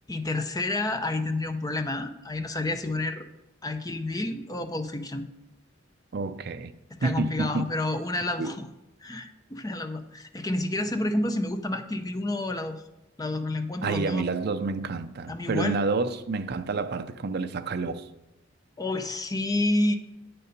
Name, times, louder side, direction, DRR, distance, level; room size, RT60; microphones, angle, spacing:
voice 1, 0.1-3.2 3.6-5.2 7.0-8.7 9.0-12.8 13.2-14.2 15.3-15.8 18.8-20.0, left 2 dB, 20° left, 0.6 m, -29 dB
voice 2, 6.1-6.7 7.0-7.7 8.4-8.6 13.8-18.1, right 3 dB, 55° right, 0.5 m, -29 dB
8.8 x 6.8 x 5.2 m
head